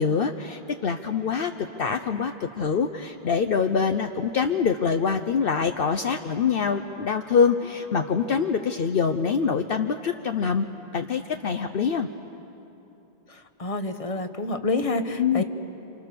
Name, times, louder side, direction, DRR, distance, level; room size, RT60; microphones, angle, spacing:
voice 1, 0.0-10.7 10.9-12.1 15.2-15.4, left 6 dB, 60° left, 7 dB, 0.9 m, -25 dB
voice 2, 13.3-15.4, left 2 dB, 35° left, 8 dB, 1.2 m, -28 dB
29.5 x 27.5 x 6.8 m, 3.0 s
omnidirectional pair, 1.1 m